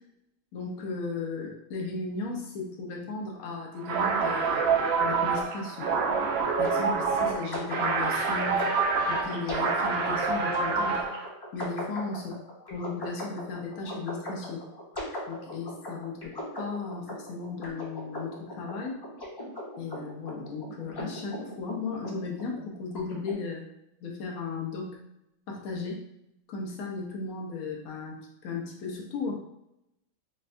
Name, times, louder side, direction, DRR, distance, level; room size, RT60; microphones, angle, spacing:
voice 1, 0.5-5.9 6.6-8.7 9.1-11.1 11.5-12.3 12.7-14.6 15.3-19.0 19.8-23.6 24.0-25.0 25.5-26.0 26.5-28.2 28.4-29.3, left 4 dB, 75° left, -1 dB, 1.2 m, -36 dB
sound 1, 3.8-11.3, right 5 dB, 70° right, 0.6 m, -27 dB
sound 2, 6.6-23.3, equal, 25° left, 0.6 m, -39 dB
4.5 x 2.1 x 2.5 m, 0.82 s
omnidirectional pair, 1.5 m